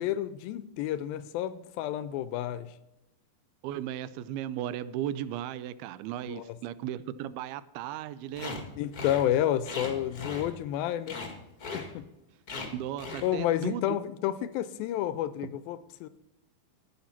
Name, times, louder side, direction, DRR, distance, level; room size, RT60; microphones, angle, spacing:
voice 1, 0.0-2.7 6.3-6.4 8.8-11.2 11.7-12.1 13.2-16.1, left 11 dB, 80° left, 14 dB, 2.2 m, -30 dB
voice 2, 3.6-8.6 12.7-14.0 15.4-15.5, right 11 dB, 85° right, 16 dB, 2.5 m, -36 dB
Bone saw, 8.3-8.6 8.9-9.2 9.6-10.8 11.1-11.3 11.6-11.9 12.5-12.7 13.0-13.3, left 3 dB, 55° left, 1.0 m, -38 dB
10.5 x 10.0 x 5.8 m, 0.96 s
omnidirectional pair, 4.4 m